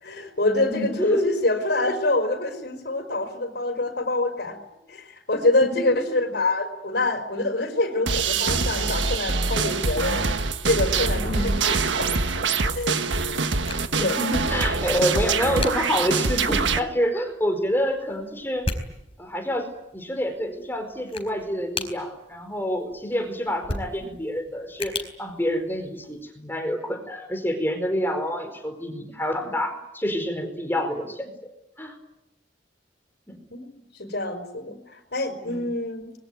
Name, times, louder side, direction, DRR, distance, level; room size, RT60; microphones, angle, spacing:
voice 1, 0.0-4.6 4.9-13.0 14.0-14.2 33.5-36.1, left 2 dB, 60° left, 7 dB, 5.1 m, -26 dB
voice 2, 0.7-1.3 5.6-5.9 11.2-11.5 14.0-18.7 19.2-31.3 31.8-32.0 33.3-33.4 35.4-35.7, equal, 10° left, 5 dB, 4.8 m, -27 dB
sound 1, 8.1-16.8, right 4 dB, 80° right, 1.5 m, -24 dB
sound 2, 12.6-26.2, left 2 dB, 30° left, 4.4 m, -39 dB
25.0 x 22.5 x 9.4 m, 0.85 s
head